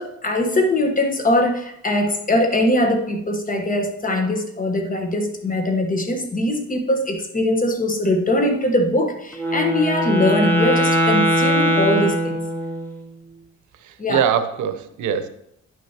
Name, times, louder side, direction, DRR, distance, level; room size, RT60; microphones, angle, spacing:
voice 1, 0.0-12.4 14.0-14.2, left 1 dB, 25° left, 5 dB, 1.1 m, -21 dB
Wind instrument woodwind instrument, 9.3-13.0, equal, 5° left, 1.2 m, -21 dB
voice 2, 13.8-15.3, right 8 dB, 80° right, 10 dB, 0.7 m, -23 dB
10.5 x 6.3 x 2.9 m, 0.76 s
cardioid pair, 90°, 30 cm